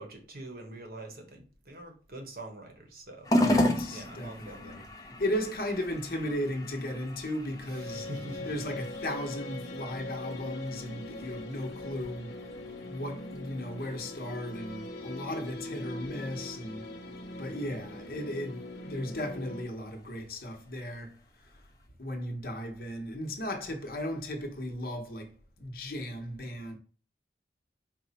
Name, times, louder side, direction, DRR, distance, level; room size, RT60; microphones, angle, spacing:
voice 1, 0.0-3.3 3.9-4.9 7.7-8.5, right 1 dB, 55° right, 1.0 m, -44 dB
sound 1, 3.2-21.9, left 1 dB, 20° left, 0.5 m, -37 dB
voice 2, 3.4-4.8 5.2-8.1 8.5-12.4 12.9-17.0 17.4-21.6 22.0-26.8, left 1 dB, 55° left, 0.9 m, -36 dB
sound 2, 7.7-19.6, left 2 dB, 90° left, 0.7 m, -41 dB
4.5 x 2.1 x 4.0 m
head